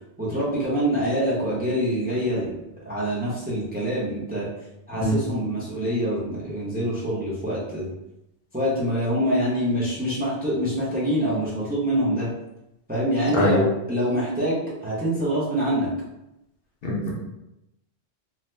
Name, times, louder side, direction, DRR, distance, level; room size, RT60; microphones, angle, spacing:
voice 1, 0.2-4.5 4.9-7.9 8.5-12.3 12.9-15.9, equal, 10° right, -7 dB, 0.6 m, -25 dB
voice 2, 5.0-5.1 13.3-13.6 16.8-17.1, left 1 dB, 60° left, -3 dB, 0.8 m, -22 dB
2.7 x 2.0 x 3.2 m, 0.88 s
omnidirectional pair, 1.2 m